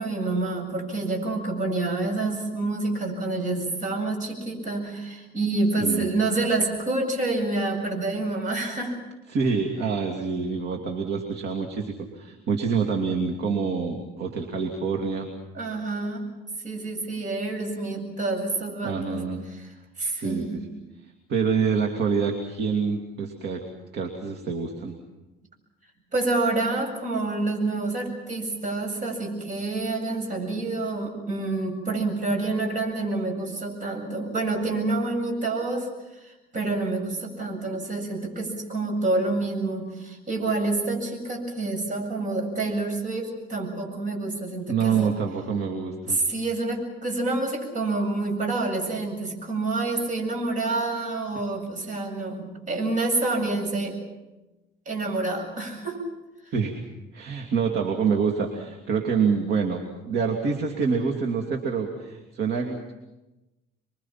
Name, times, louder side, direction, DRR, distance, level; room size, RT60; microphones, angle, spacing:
voice 1, 0.0-9.0 15.5-16.2 16.6-19.2 19.5-19.7 20.0-20.6 26.1-45.1 46.0-54.0 54.9-56.0 56.4-56.5, right 2 dB, 45° right, 3 dB, 7.9 m, -28 dB
voice 2, 9.3-15.3 18.8-19.5 20.1-20.7 21.3-23.7 23.9-24.9 44.7-46.2 56.5-56.8 57.1-62.9, right 5 dB, 60° right, 2 dB, 2.8 m, -26 dB
28.5 x 23.0 x 5.9 m, 1.0 s
cardioid pair, 120°, 19 cm